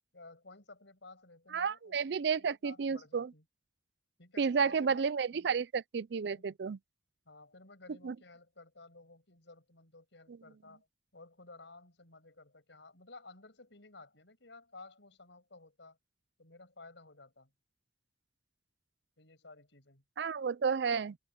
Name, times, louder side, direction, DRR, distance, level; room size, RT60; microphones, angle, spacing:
voice 1, 0.1-3.4 4.2-5.0 5.3-5.5 6.3-6.5 7.2-10.9 11.1-16.0 16.4-17.5 19.2-20.0, left 3 dB, 90° left, 6.6 m, -55 dB
voice 2, 1.5-3.3 4.4-6.8 8.0-8.2 20.2-21.2, right 5 dB, 70° right, 0.4 m, -31 dB
head